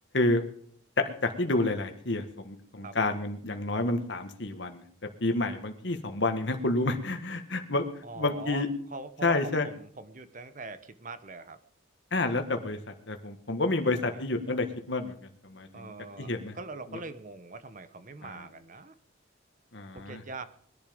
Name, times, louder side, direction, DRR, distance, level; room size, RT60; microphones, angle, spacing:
voice 1, 1.0-4.8 5.2-8.7 9.2-9.7 12.1-15.9 16.2-16.6 18.2-18.5 19.7-20.2, left 2 dB, 65° left, 5 dB, 1.6 m, -29 dB
voice 2, 8.0-8.6 8.9-11.6 13.9-14.2 15.7-18.9 19.9-20.4, right 3 dB, 40° right, 12 dB, 1.1 m, -42 dB
20.5 x 11.0 x 5.2 m, 0.63 s
head